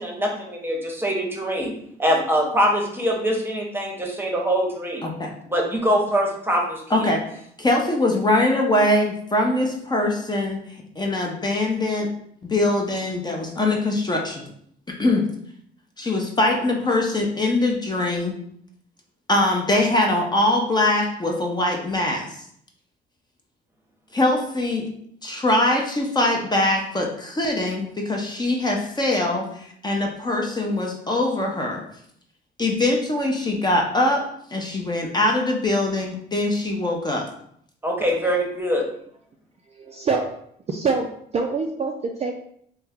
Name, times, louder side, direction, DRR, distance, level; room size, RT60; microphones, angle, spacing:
voice 1, 0.0-1.7 2.0-5.0 5.5-7.1 37.8-38.9, equal, 10° right, 0 dB, 0.8 m, -23 dB
voice 2, 5.0-5.3 6.9-10.6 11.0-12.1 12.4-14.5 14.9-15.3 16.0-18.4 19.3-22.4 24.1-24.9 25.2-31.8 32.6-34.2 34.5-37.3, left 2 dB, 20° left, 0 dB, 0.6 m, -22 dB
voice 3, 39.7-40.3 40.7-41.1 41.3-42.3, right 4 dB, 35° right, 2 dB, 0.3 m, -25 dB
3.2 x 2.2 x 3.5 m, 0.67 s
cardioid pair, 90°, 20 cm